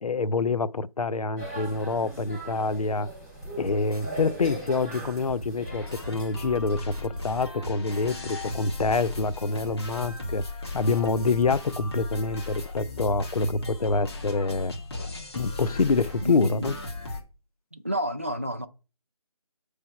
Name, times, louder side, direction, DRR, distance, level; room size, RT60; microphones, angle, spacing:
voice 1, 0.0-3.1 3.6-10.4 10.7-14.7 15.3-16.8, left 4 dB, 70° left, 0.5 m, -26 dB
sound 1, 1.4-7.1, right 1 dB, 15° left, 3.0 m, -40 dB
sound 2, 3.4-11.4, right 1 dB, 80° right, 0.9 m, -43 dB
sound 3, 5.7-17.2, left 2 dB, 45° left, 1.5 m, -36 dB
voice 2, 16.2-16.8 17.7-18.7, equal, 20° right, 0.3 m, -29 dB
7.8 x 3.4 x 5.5 m
figure-of-eight pair, 165°, 19 cm